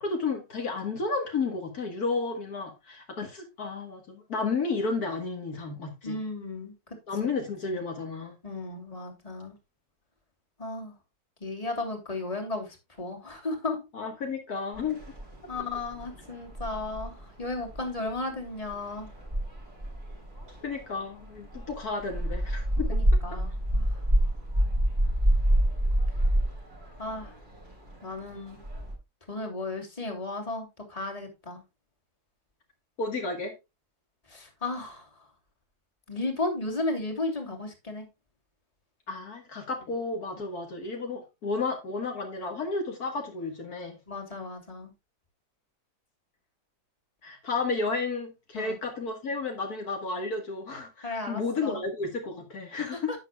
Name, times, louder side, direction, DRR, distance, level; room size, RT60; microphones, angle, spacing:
voice 1, 0.0-6.2 7.1-8.4 13.9-15.0 20.6-22.9 23.3-23.4 33.0-33.5 39.1-44.0 47.2-53.1, left 4 dB, 65° left, 2.1 m, -32 dB
voice 2, 6.0-6.7 7.2-7.3 7.7-7.8 8.4-9.5 10.6-10.9 11.4-12.7 13.0-13.8 15.5-19.1 22.9-23.8 27.0-27.3 28.0-28.6 29.3-31.6 34.3-35.0 36.1-38.1 44.1-44.9 48.5-48.8 51.0-51.8, left 2 dB, 20° left, 2.8 m, -34 dB
sound 1, 14.7-28.9, right 1 dB, 30° right, 4.9 m, -29 dB
11.0 x 9.2 x 2.3 m
omnidirectional pair, 1.7 m